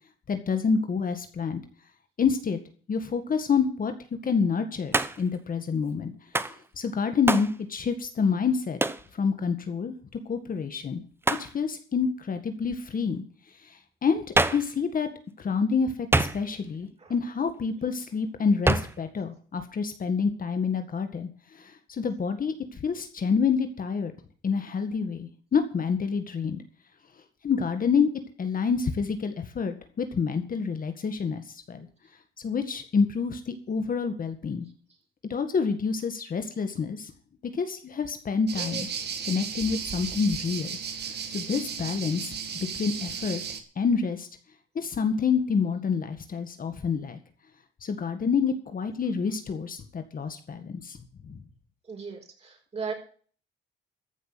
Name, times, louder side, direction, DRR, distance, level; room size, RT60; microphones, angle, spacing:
voice 1, 0.3-1.6 2.2-2.6 2.9-3.9 4.2-6.1 6.8-8.8 9.1-10.0 10.3-11.0 11.4-13.2 13.6-14.2 14.5-15.1 15.4-24.1 24.4-26.6 27.4-28.1 28.4-31.9 32.4-34.7 35.3-37.1 37.5-38.9 39.2-40.8 41.3-42.3 42.7-43.4 43.8-44.3 44.8-47.2 47.8-51.0 51.2-51.4, left 5 dB, 45° left, 8 dB, 1.8 m, -28 dB
Hands, 4.9-5.4 6.3-6.6 7.3-7.6 8.8-9.1 11.2-11.5 14.4-14.7 16.1-16.7 18.7-19.0, right 2 dB, 10° right, 0.9 m, -25 dB
sound 1, 38.5-43.6, right 7 dB, 55° right, 1.9 m, -35 dB
voice 2, 51.9-52.9, right 5 dB, 30° right, 0 dB, 5.6 m, -36 dB
14.5 x 6.0 x 9.0 m, 0.43 s
cardioid pair, 90°, 20 cm